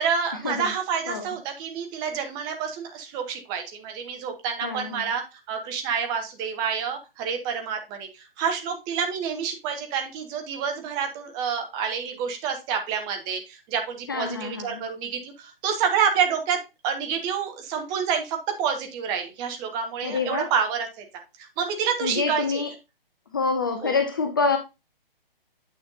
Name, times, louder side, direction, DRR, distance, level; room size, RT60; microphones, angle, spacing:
voice 1, 0.0-5.2 5.5-16.6 16.8-21.0 21.6-22.6 23.8-24.0, right 7 dB, 15° right, 0.9 m, -28 dB
voice 2, 4.6-5.1 14.1-14.8 20.0-20.5 22.0-22.7 23.3-24.6, left 4 dB, 25° left, 0.5 m, -26 dB
9.0 x 5.6 x 2.6 m
figure-of-eight pair, 140°, 29 cm